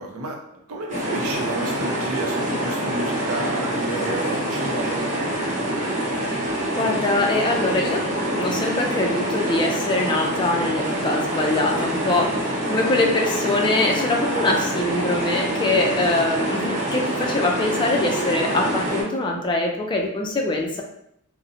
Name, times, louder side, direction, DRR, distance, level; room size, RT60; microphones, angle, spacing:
voice 1, 0.0-5.2 16.3-16.4, right 2 dB, 75° right, 1 dB, 0.5 m, -31 dB
sound 1, 0.9-19.0, right 1 dB, 35° right, 0.8 m, -26 dB
voice 2, 6.7-8.0 8.4-20.8, left 2 dB, 20° left, 1 dB, 0.3 m, -23 dB
2.6 x 2.0 x 2.6 m, 0.74 s
head